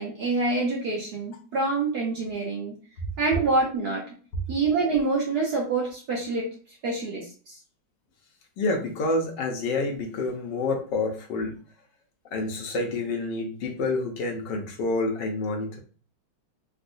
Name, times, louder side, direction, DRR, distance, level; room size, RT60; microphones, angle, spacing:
voice 1, 0.0-2.7 3.2-4.1 4.5-6.5 6.8-7.6, right 3 dB, 60° right, -3 dB, 1.1 m, -26 dB
voice 2, 8.6-11.5 12.3-15.8, left 2 dB, 65° left, 1 dB, 1.3 m, -28 dB
3.6 x 2.5 x 2.5 m, 0.41 s
omnidirectional pair, 2.2 m